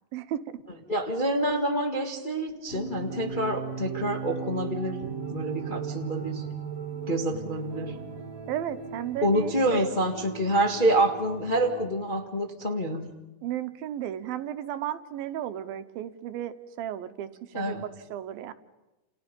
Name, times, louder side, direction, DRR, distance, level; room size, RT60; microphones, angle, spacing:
voice 1, 0.1-0.6 8.5-9.9 13.4-18.5, right 11 dB, 80° right, 11 dB, 2.8 m, -34 dB
voice 2, 0.9-5.0 5.3-6.5 7.1-8.0 9.2-13.1 17.5-17.8, right 1 dB, 25° left, 1 dB, 1.0 m, -27 dB
sound 1, 2.7-11.9, right 6 dB, 25° right, 2.6 m, -37 dB
29.5 x 29.0 x 5.4 m, 1.0 s
omnidirectional pair, 4.2 m